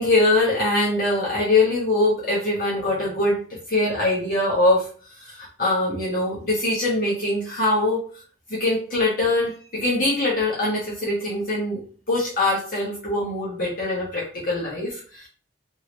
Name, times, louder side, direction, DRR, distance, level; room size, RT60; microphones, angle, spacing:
voice 1, 0.0-8.2 8.5-11.8 12.1-15.3, left 2 dB, 50° left, -7 dB, 1.0 m, -23 dB
3.1 x 2.7 x 3.0 m, 0.41 s
head